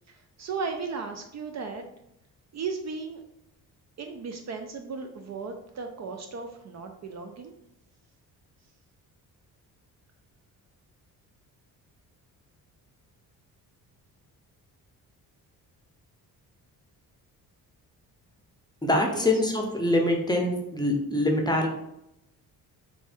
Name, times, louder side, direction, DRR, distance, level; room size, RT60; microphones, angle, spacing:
voice 1, 0.1-1.8 2.5-3.2 4.0-7.5 19.1-19.3, right 4 dB, 45° right, 5 dB, 0.4 m, -36 dB
voice 2, 18.8-21.7, left 1 dB, 10° left, 2 dB, 0.6 m, -24 dB
3.2 x 2.7 x 3.4 m, 0.81 s
cardioid pair, 75°, 39 cm